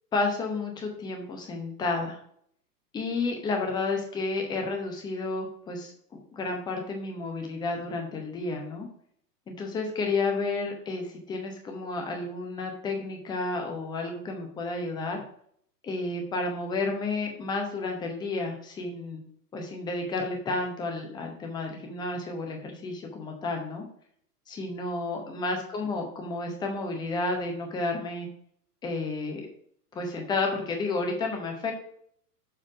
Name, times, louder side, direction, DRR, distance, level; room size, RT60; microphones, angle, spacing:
voice 1, 0.1-2.2 2.9-5.9 6.3-8.9 9.5-15.2 15.8-19.2 19.5-23.9 24.5-28.3 28.8-29.4 29.9-31.7, left 3 dB, 10° left, 2 dB, 0.7 m, -31 dB
6.7 x 3.7 x 4.8 m, 0.65 s
figure-of-eight pair, 105°, 49 cm